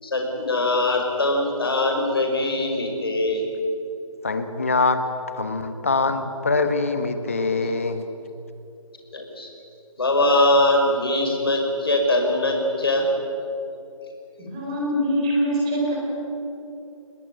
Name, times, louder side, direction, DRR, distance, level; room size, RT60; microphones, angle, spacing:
voice 1, 0.0-3.4 9.1-9.5 10.0-13.1, left 1 dB, 45° left, 2 dB, 5.4 m, -22 dB
voice 2, 4.2-5.0 5.4-8.0, left 3 dB, 25° left, 9 dB, 1.3 m, -23 dB
voice 3, 14.4-15.9, equal, 10° right, -4 dB, 4.6 m, -23 dB
28.0 x 18.5 x 9.4 m, 2.8 s
figure-of-eight pair, 180°, 18 cm